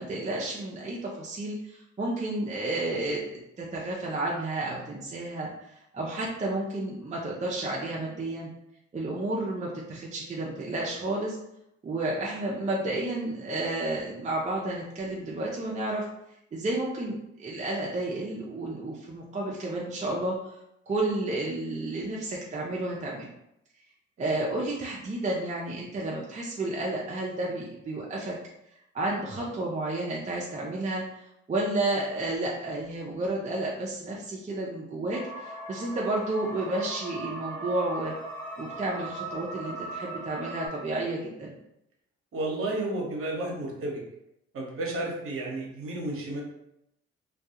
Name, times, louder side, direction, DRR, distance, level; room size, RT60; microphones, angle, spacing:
voice 1, 0.0-5.5 5.9-8.5 8.9-11.4 11.8-16.0 16.5-20.6 20.9-23.3 24.2-28.3 28.9-31.0 31.5-38.1 38.6-41.5, right 2 dB, 25° right, -4 dB, 0.5 m, -31 dB
sound 1, 35.1-40.7, right 2 dB, 10° left, 1.4 m, -38 dB
voice 2, 42.3-44.0 44.5-46.4, right 2 dB, 50° right, -1 dB, 0.9 m, -32 dB
2.3 x 2.2 x 2.8 m, 0.82 s
supercardioid pair, 75°, 29 cm